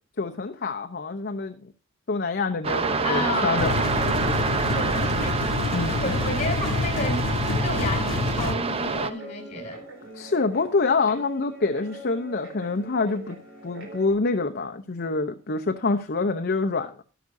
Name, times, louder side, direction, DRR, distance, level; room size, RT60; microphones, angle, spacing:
voice 1, 0.2-1.7 2.1-3.7 5.7-6.1 10.1-13.4 13.6-17.0, left 3 dB, 55° left, 0.8 m, -26 dB
sound 1, 2.6-9.1, right 4 dB, 30° right, 0.6 m, -27 dB
voice 2, 3.0-4.3 4.6-5.7 6.0-7.3 7.6-9.8, left 1 dB, 35° left, 3.9 m, -32 dB
sound 2, 3.6-8.6, left 3 dB, 90° left, 0.9 m, -27 dB
Guitar, 8.7-14.1, right 1 dB, 80° right, 3.6 m, -42 dB
12.0 x 11.0 x 2.7 m
head